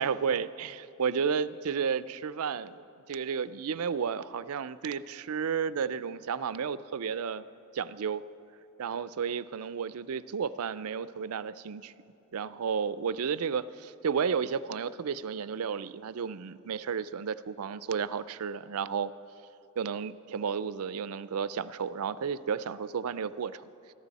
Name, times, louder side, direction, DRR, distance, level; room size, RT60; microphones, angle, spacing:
voice 1, 0.0-2.8 3.1-7.4 7.7-8.2 8.8-11.9 12.3-19.1 19.8-23.7, right 6 dB, 80° right, 16 dB, 0.4 m, -32 dB
21.5 x 14.5 x 4.1 m, 2.7 s
head